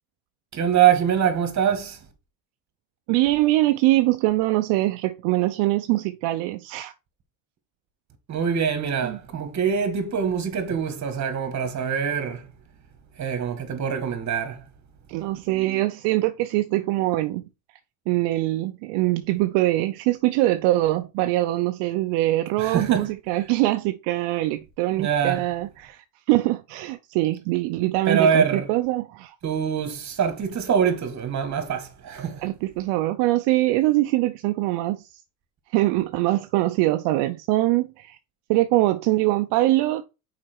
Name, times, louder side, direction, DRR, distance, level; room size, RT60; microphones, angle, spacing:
voice 1, 0.5-2.0 8.3-12.5 13.2-14.6 22.6-23.1 24.9-25.5 28.1-28.7 29.4-32.4, right 7 dB, 40° right, 2.0 m, -24 dB
voice 2, 3.1-6.9 9.0-9.2 15.1-17.4 18.1-29.3 32.4-35.0 35.7-38.2 38.5-40.0, right 17 dB, 75° right, 0.7 m, -23 dB
6.1 x 5.0 x 4.6 m
supercardioid pair, 105°, 43 cm